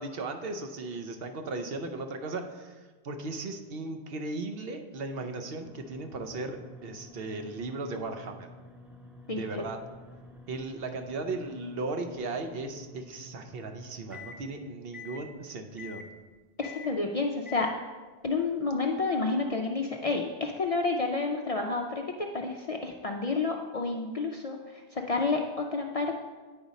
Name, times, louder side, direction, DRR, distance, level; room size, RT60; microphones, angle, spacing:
voice 1, 0.0-8.5 9.3-9.8 10.5-16.0, right 3 dB, 65° right, 6 dB, 0.9 m, -36 dB
sound 1, 5.6-14.4 14.9-15.3 15.8-16.1 16.6-16.9 17.5-17.8, left 3 dB, ahead, 0.7 m, -49 dB
voice 2, 9.3-9.6 16.6-17.7 18.2-26.1, left 3 dB, 50° left, 2 dB, 0.4 m, -30 dB
8.7 x 5.0 x 4.0 m, 1.3 s
omnidirectional pair, 1.1 m